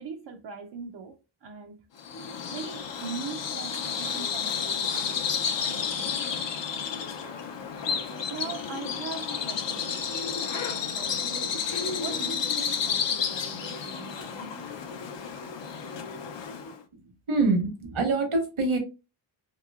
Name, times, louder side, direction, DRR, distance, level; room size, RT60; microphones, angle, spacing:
voice 1, 0.0-1.9 2.5-5.3 5.6-6.6 8.3-10.1 10.6-14.8, right 5 dB, 55° right, 0.6 m, -41 dB
Bird vocalization bird call bird song, 2.0-16.8, left 6 dB, 60° left, 0.6 m, -31 dB
voice 2, 17.3-18.8, right 3 dB, 70° right, 1.2 m, -25 dB
3.0 x 2.8 x 2.3 m
cardioid pair, 65°, 50 cm